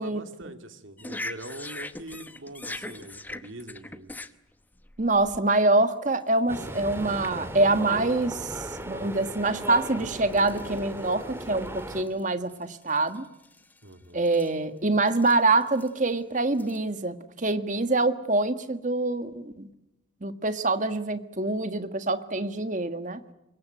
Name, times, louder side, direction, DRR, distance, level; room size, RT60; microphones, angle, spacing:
voice 1, 0.0-4.1 13.8-14.2, right 1 dB, 80° right, 8 dB, 2.6 m, -43 dB
sound 1, 1.0-5.4 6.1-6.3 6.6-7.0 7.7-7.9 8.8-8.9 9.2-12.2 12.5-13.9 14.3-14.5 15.1-15.9 16.5-16.8, left 2 dB, 10° left, 0.9 m, -41 dB
voice 2, 5.0-13.3 14.1-19.7 20.2-23.2, right 2 dB, 40° right, 10 dB, 1.6 m, -25 dB
sound 2, 6.5-12.0, right 1 dB, 10° right, 2.2 m, -37 dB
25.0 x 22.0 x 9.1 m, 0.90 s
head